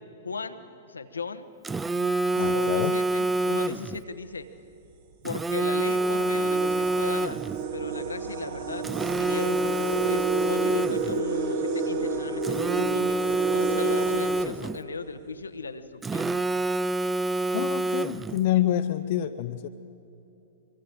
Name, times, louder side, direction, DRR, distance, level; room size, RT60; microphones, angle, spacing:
voice 1, 0.2-1.5 2.4-4.5 5.2-7.4 7.7-8.9 9.2-16.3, left 4 dB, 75° left, 10 dB, 1.0 m, -37 dB
Telephone, 1.6-4.0 5.3-7.6 8.8-11.2 12.4-14.8 16.0-18.4, right 2 dB, 10° right, 0.4 m, -27 dB
voice 2, 2.3-3.0 17.5-19.7, left 13 dB, 50° left, 9 dB, 0.5 m, -27 dB
sound 1, 4.0-4.1 4.9-5.0 5.4-15.2, right 4 dB, 50° right, 1.7 m, -31 dB
24.5 x 24.0 x 4.7 m, 2.8 s
figure-of-eight pair, 105°, 0 cm